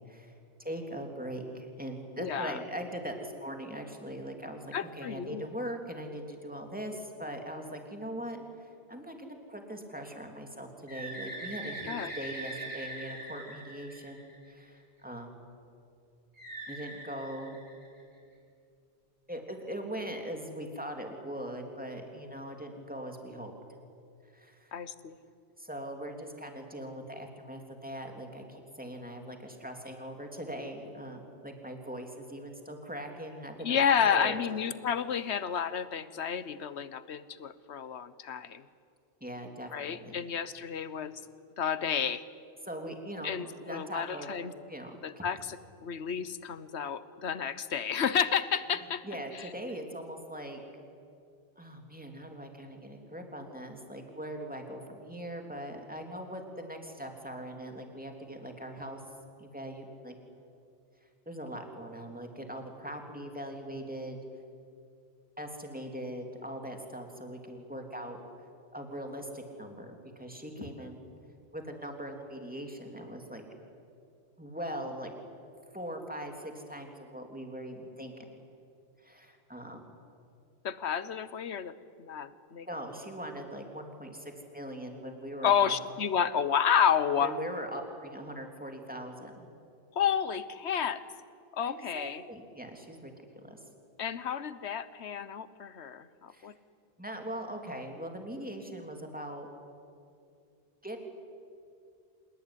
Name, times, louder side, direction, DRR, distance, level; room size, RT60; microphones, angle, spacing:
voice 1, 0.6-15.4 16.7-17.6 19.3-23.5 24.3-24.7 25.6-34.4 39.2-40.2 42.6-44.3 44.7-45.2 49.0-50.6 51.6-59.0 59.4-60.1 61.2-64.2 65.4-68.2 68.7-71.0 71.5-73.4 74.4-75.1 75.7-78.2 79.0-80.0 82.6-85.7 87.2-89.5 91.6-93.6 96.3-96.5 97.0-99.5 100.8-101.0, right 1 dB, 10° right, 3 dB, 3.1 m, -41 dB
voice 2, 2.2-2.6 4.7-5.4 11.9-12.1 24.7-25.2 33.6-38.6 39.7-41.2 41.6-42.2 43.2-44.5 45.0-45.6 45.8-49.0 49.3-49.5 70.6-70.7 80.6-81.7 82.0-82.7 85.4-87.4 89.9-91.0 91.5-92.2 94.0-96.5, left 7 dB, 80° left, 15 dB, 1.3 m, -30 dB
Bird, 10.9-14.6 16.4-18.1, right 1 dB, 80° right, 7.5 m, -42 dB
27.0 x 19.0 x 9.9 m, 2.4 s
omnidirectional pair, 1.1 m